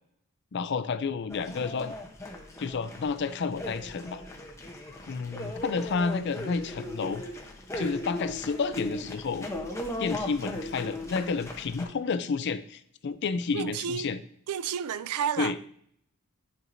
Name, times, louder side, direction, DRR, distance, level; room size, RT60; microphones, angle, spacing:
voice 1, 0.5-1.9 2.6-4.2 5.1-7.2 7.7-9.5 10.0-14.2 15.4-15.6, left 5 dB, 50° left, 0.4 m, -30 dB
sound 1, 1.3-11.8, left 1 dB, 15° left, 0.8 m, -38 dB
voice 2, 13.5-14.1 14.5-15.5, right 8 dB, 90° right, 0.4 m, -31 dB
10.5 x 4.6 x 2.6 m
head